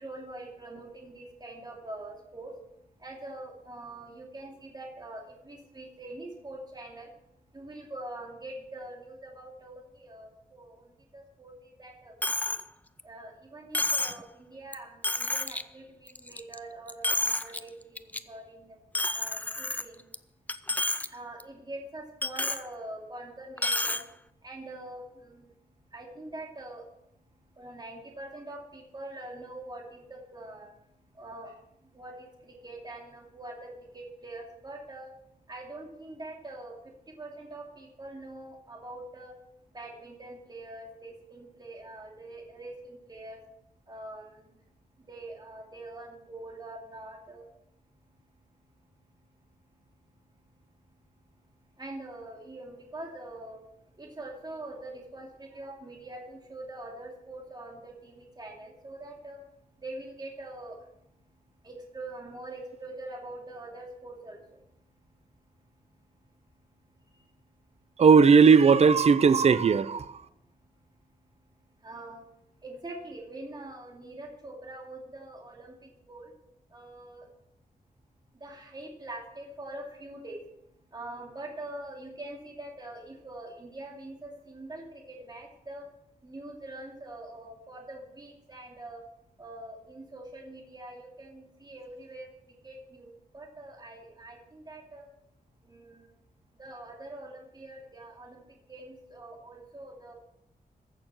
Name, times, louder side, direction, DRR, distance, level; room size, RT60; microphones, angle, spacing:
voice 1, 0.0-2.5 3.0-7.1 7.5-10.9 11.1-12.5 13.0-18.8 19.1-20.0 21.1-24.0 24.4-25.5 25.9-26.9 27.6-30.7 31.1-31.5 31.9-35.1 35.5-36.8 37.1-39.3 39.7-43.4 43.9-44.5 45.1-47.5 51.8-53.6 54.0-59.4 59.8-60.8 61.6-64.4 71.8-72.2 72.6-76.3 76.7-77.3 78.4-80.4 80.9-85.9 86.2-89.0 89.4-92.3 92.6-95.0 95.6-96.1 96.6-98.4 98.7-100.1, right 2 dB, 25° right, 2.6 m, -44 dB
Coin (dropping), 12.2-12.6 13.0-13.1 13.7-14.2 14.7-14.8 15.0-15.6 16.1-16.6 16.9-17.6 18.0-18.2 18.9-20.2 20.5-21.1 21.4-21.5 22.2-22.6 23.6-24.0, left 2 dB, 10° left, 0.5 m, -29 dB
voice 2, 68.0-70.2, right 5 dB, 45° right, 0.5 m, -18 dB
15.0 x 6.9 x 5.9 m
wide cardioid pair, 130°, 16 cm